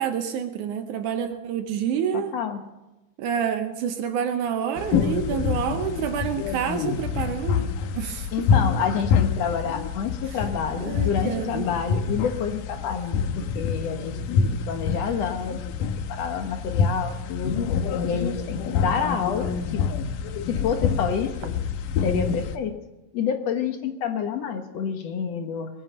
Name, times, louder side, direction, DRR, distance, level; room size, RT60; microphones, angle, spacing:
voice 1, 0.0-2.4 3.2-8.3 10.8-11.7, right 8 dB, 75° right, 7 dB, 2.3 m, -28 dB
voice 2, 2.1-2.6 8.3-15.7 16.1-17.7 18.0-19.9 20.4-21.6 22.0-22.8 23.1-25.7, left 7 dB, 60° left, 6 dB, 2.1 m, -28 dB
sound 1, 4.8-22.6, left 6 dB, 85° left, 2.5 m, -27 dB
20.5 x 9.6 x 6.8 m, 1.0 s
omnidirectional pair, 3.7 m